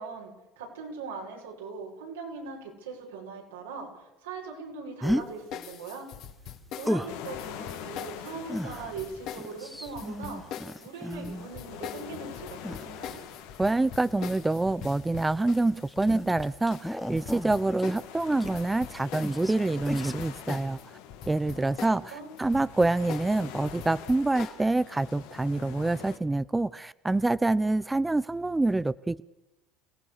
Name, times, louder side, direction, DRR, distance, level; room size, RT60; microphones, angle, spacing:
voice 1, 0.0-6.1 6.7-13.2 21.5-22.3, right 4 dB, 90° right, -1 dB, 6.9 m, -41 dB
sound 1, 5.0-5.3 6.8-7.2 8.5-11.6 12.6-13.4 14.2-14.5 15.3-18.9 19.2-19.6 19.9-20.2 20.5-20.7, equal, ahead, 1.4 m, -34 dB
sound 2, 5.5-20.8 21.1-24.6, left 9 dB, 60° left, 2.6 m, -42 dB
sound 3, 7.1-26.2, left 10 dB, 75° left, 2.6 m, -46 dB
voice 2, 13.6-20.8 21.3-29.2, right 2 dB, 15° right, 16 dB, 0.7 m, -26 dB
29.0 x 17.5 x 6.8 m, 0.93 s
hypercardioid pair, 80°, 0 cm